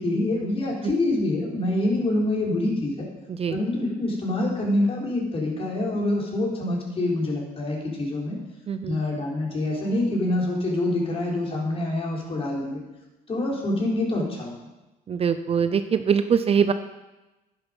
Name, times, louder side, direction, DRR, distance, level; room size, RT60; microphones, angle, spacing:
voice 1, 0.0-3.1 3.5-8.4 8.8-12.8 13.3-14.6, left 1 dB, 35° left, -2 dB, 4.2 m, -26 dB
voice 2, 8.7-9.0 15.1-16.7, right 7 dB, 35° right, 10 dB, 0.6 m, -23 dB
11.0 x 10.5 x 5.3 m, 1.0 s
cardioid pair, 110°, 17 cm